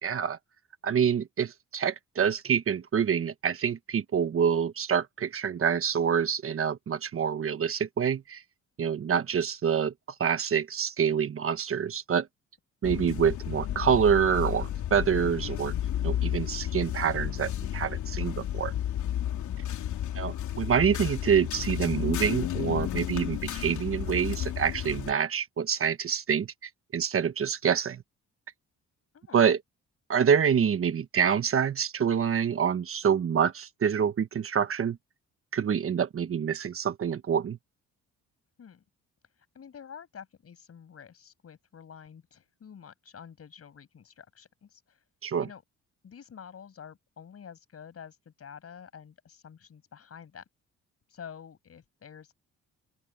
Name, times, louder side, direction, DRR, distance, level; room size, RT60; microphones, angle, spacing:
voice 1, 0.0-0.4 0.8-8.4 8.8-9.9 10.2-12.3 12.8-15.7 16.0-18.7 20.2-26.5 26.9-28.0 29.3-29.6 30.1-35.0 35.5-37.6 45.2-45.5, right 7 dB, 45° right, 1.3 m, -26 dB
sound 1, 12.8-25.1, left 11 dB, 75° left, 3.2 m, -32 dB
voice 2, 19.5-19.9 29.1-29.4 38.6-38.8 39.5-45.0 45.4-45.6 46.0-50.4 51.1-52.3, left 7 dB, 50° left, 7.6 m, -48 dB
open air
cardioid pair, 90°, 30 cm